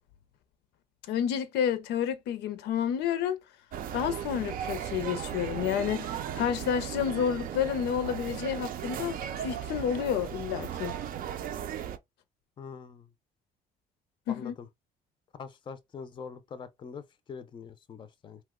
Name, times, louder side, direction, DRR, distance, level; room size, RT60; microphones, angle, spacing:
voice 1, 1.1-3.4 3.9-11.0 14.3-14.5, left 9 dB, 80° left, 0.5 m, -30 dB
sound 1, 3.7-12.0, right 9 dB, 60° right, 0.4 m, -36 dB
voice 2, 12.6-13.1 14.3-14.7 15.3-18.4, left 6 dB, 30° left, 0.4 m, -44 dB
2.8 x 2.1 x 3.5 m
cardioid pair, 110°, 17 cm